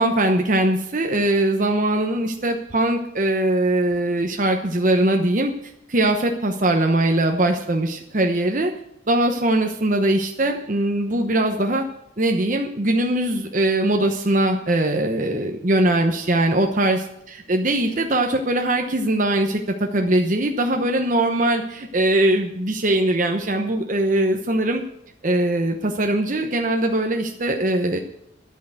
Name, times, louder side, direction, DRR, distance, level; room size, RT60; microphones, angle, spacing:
voice 1, 0.0-5.5 5.9-8.7 9.1-11.8 12.2-17.1 17.5-24.8 25.2-28.0, right 1 dB, 40° right, 3 dB, 1.0 m, -21 dB
10.5 x 9.1 x 8.0 m, 0.79 s
head